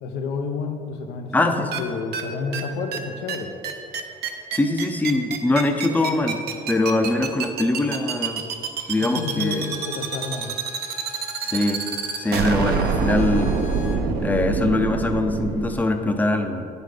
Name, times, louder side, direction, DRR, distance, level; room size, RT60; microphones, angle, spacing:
voice 1, 0.0-3.5 9.0-10.6, left 5 dB, 80° left, 5 dB, 0.6 m, -30 dB
voice 2, 1.3-1.7 4.5-6.4 6.7-8.4 8.9-9.7 11.4-11.8 12.2-13.6 14.2-16.7, left 2 dB, 10° left, 6 dB, 0.5 m, -22 dB
sound 1, 1.7-1.8 2.1-2.2 2.5-2.6 2.9-3.0 3.3-3.4 3.6-15.7, right 5 dB, 70° right, 0.8 m, -25 dB
Bowed string instrument, 8.8-14.1, left 5 dB, 45° left, 0.7 m, -42 dB
9.2 x 4.1 x 4.9 m, 2.5 s
cardioid pair, 110°, 17 cm